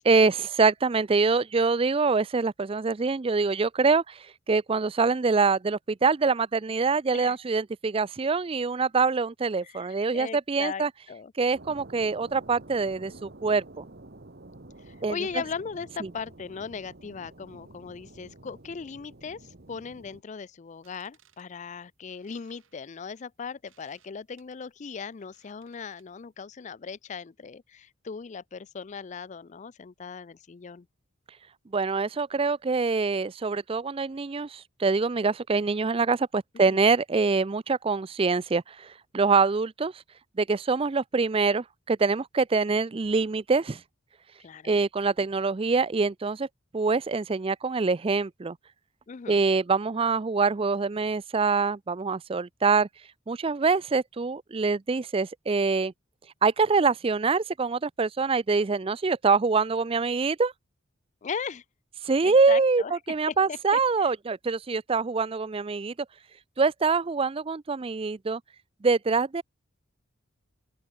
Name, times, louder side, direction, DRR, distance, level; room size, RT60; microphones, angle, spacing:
voice 1, 0.1-10.9 11.4-13.8 15.0-15.2 16.0-16.1 31.7-38.9 39.1-39.9 40.4-43.8 44.6-46.5 46.7-48.6 49.3-52.9 53.3-55.9 56.4-60.5 62.0-65.9 66.6-68.4 68.8-69.4, right 4 dB, 25° right, 0.4 m, -25 dB
voice 2, 9.6-11.3 14.8-30.9 36.7-36.9 44.4-44.7 49.1-49.4 61.2-61.6 62.2-63.8, left 5 dB, 35° left, 0.4 m, -38 dB
sound 1, 11.5-20.2, right 2 dB, 50° right, 1.6 m, -49 dB
sound 2, 20.7-26.3, right 9 dB, 70° right, 7.3 m, -67 dB
open air
head